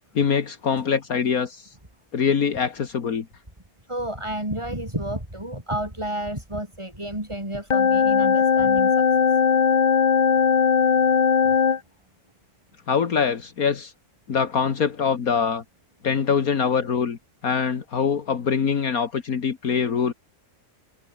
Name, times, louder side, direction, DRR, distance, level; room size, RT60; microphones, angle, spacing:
voice 1, 0.1-1.7 2.1-3.3 12.9-13.9 14.3-15.6 16.0-17.2 17.4-20.1, left 6 dB, 70° left, 2.0 m, -23 dB
voice 2, 3.9-9.0, right 1 dB, 20° right, 5.7 m, -31 dB
sound 1, 7.7-11.8, left 6 dB, 35° left, 0.8 m, -19 dB
omnidirectional pair, 1.6 m